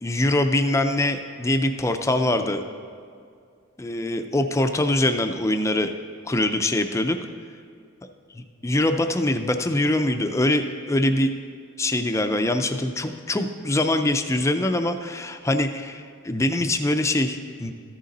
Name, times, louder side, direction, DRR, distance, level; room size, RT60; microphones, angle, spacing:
voice 1, 0.0-2.6 3.8-5.9 6.2-7.2 8.4-11.3 11.8-17.7, left 1 dB, 15° left, 7 dB, 0.4 m, -23 dB
14.0 x 6.5 x 4.1 m, 2.3 s
head